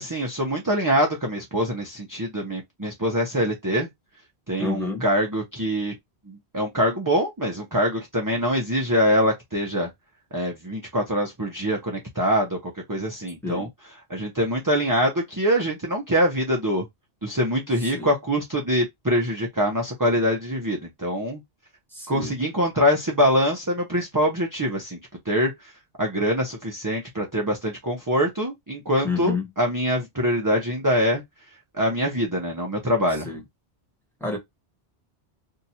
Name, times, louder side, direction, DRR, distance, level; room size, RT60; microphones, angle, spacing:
voice 1, 0.0-3.9 4.5-5.9 6.3-9.9 10.3-13.7 14.1-16.9 17.2-21.4 22.1-25.0 25.3-25.5 26.0-31.2 31.8-33.3, equal, 20° right, 0.7 m, -24 dB
voice 2, 4.6-5.1 13.4-13.7 17.8-18.1 21.9-22.4 29.0-29.5 33.1-33.4 34.2-34.4, left 4 dB, ahead, 1.1 m, -29 dB
2.8 x 2.5 x 4.2 m
omnidirectional pair, 1.1 m